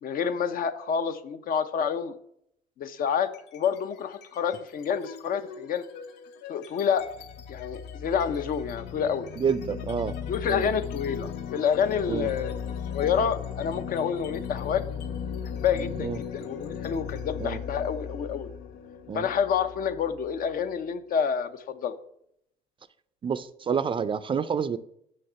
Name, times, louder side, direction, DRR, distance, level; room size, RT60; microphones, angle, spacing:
voice 1, 0.0-2.1 2.8-5.8 6.5-7.1 7.5-9.3 10.3-14.8 15.6-18.5 19.1-22.0, left 7 dB, 55° left, 0.7 m, -28 dB
sound 1, 3.2-3.8 4.1-20.7, left 7 dB, 90° left, 0.7 m, -37 dB
voice 2, 9.4-10.2 10.5-10.7 12.1-12.3 16.0-16.2 17.4-17.6 19.1-19.3 23.2-24.8, right 7 dB, 30° right, 0.4 m, -28 dB
6.4 x 6.2 x 5.6 m
cardioid pair, 110°, 17 cm